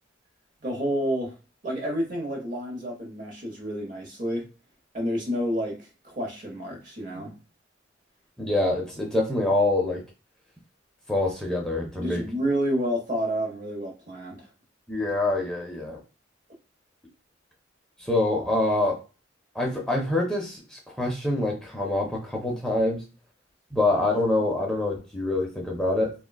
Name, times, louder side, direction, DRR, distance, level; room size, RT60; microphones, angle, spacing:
voice 1, 0.6-1.3 1.6-4.5 4.9-7.4 12.0-14.5, equal, 45° right, 0 dB, 0.8 m, -29 dB
voice 2, 8.4-10.0 11.1-12.2 14.9-16.0 18.0-19.0 19.5-23.0 23.7-26.1, left 2 dB, 5° left, -2 dB, 0.5 m, -25 dB
3.6 x 2.2 x 2.2 m, 0.33 s
head